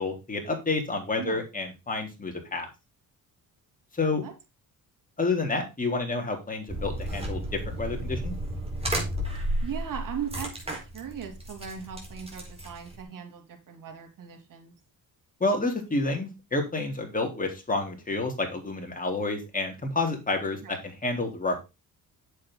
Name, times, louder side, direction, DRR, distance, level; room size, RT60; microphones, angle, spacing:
voice 1, 0.0-2.7 3.9-4.2 5.2-8.3 15.4-21.6, left 3 dB, 25° left, 2 dB, 3.7 m, -29 dB
sound 1, 6.7-13.0, right 1 dB, 15° right, 4.4 m, -33 dB
voice 2, 9.6-14.7 20.6-20.7, right 8 dB, 60° right, 3 dB, 3.2 m, -38 dB
8.4 x 7.5 x 3.8 m, 0.26 s
cardioid pair, 90°, 36 cm